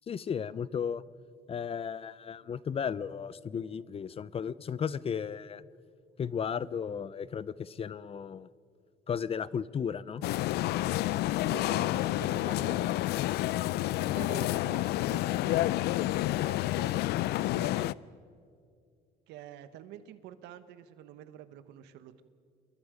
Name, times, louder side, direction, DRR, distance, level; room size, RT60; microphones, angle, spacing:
voice 1, 0.1-1.0 1.5-5.6 6.2-8.5 9.1-10.2, left 7 dB, 35° left, 19 dB, 0.6 m, -34 dB
sound 1, 10.2-17.9, left 16 dB, 75° left, 0.4 m, -29 dB
voice 2, 11.3-13.0 13.8-17.9 19.3-22.2, right 10 dB, 90° right, 12 dB, 1.2 m, -47 dB
28.5 x 22.0 x 5.1 m, 2.3 s
cardioid pair, 110°, 17 cm